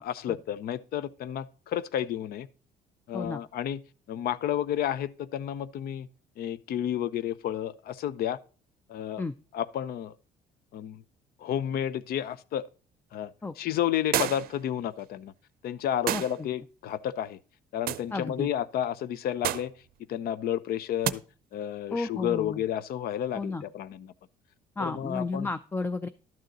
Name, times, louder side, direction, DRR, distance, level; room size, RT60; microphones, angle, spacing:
voice 1, 0.0-2.5 3.1-3.8 4.1-6.1 6.4-8.4 8.9-9.2 9.5-10.1 10.7-11.0 11.4-12.6 13.1-13.3 13.6-15.3 15.6-17.4 17.7-19.7 20.1-21.2 21.5-24.1 24.8-25.5, left 10 dB, 65° left, 0.6 m, -31 dB
sound 1, 14.1-14.6 16.1-16.4 17.9-18.1 19.4-19.8 21.0-21.2, right 12 dB, 60° right, 0.5 m, -29 dB
voice 2, 18.1-18.5 21.9-22.6 23.3-23.6 24.8-26.1, left 3 dB, 10° left, 0.4 m, -32 dB
12.0 x 6.5 x 4.1 m
cardioid pair, 110°, 17 cm